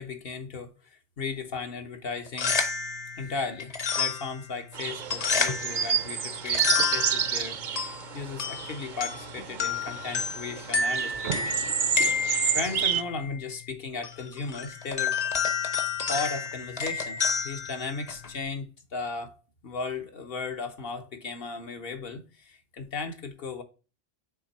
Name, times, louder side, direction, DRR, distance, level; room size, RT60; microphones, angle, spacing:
voice 1, 0.0-2.6 3.2-11.7 12.5-15.2 16.1-23.6, left 4 dB, 65° left, 1.2 m, -36 dB
sound 1, 2.2-18.4, left 5 dB, 40° left, 0.9 m, -31 dB
sound 2, 4.7-13.0, right 8 dB, 55° right, 0.7 m, -30 dB
6.3 x 4.3 x 4.0 m
omnidirectional pair, 1.0 m